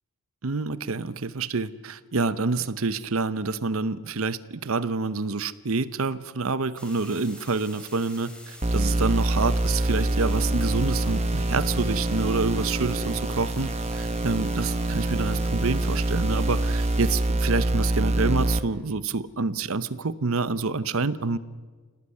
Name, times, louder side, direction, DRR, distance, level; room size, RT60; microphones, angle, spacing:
voice 1, 0.4-21.4, right 4 dB, 65° right, 15 dB, 0.8 m, -27 dB
sound 1, 6.8-17.3, left 1 dB, 5° left, 3.1 m, -46 dB
sound 2, 8.6-18.6, right 1 dB, 30° right, 1.2 m, -25 dB
sound 3, 10.3-15.9, left 1 dB, 20° left, 1.8 m, -45 dB
26.5 x 18.5 x 9.8 m, 1.5 s
head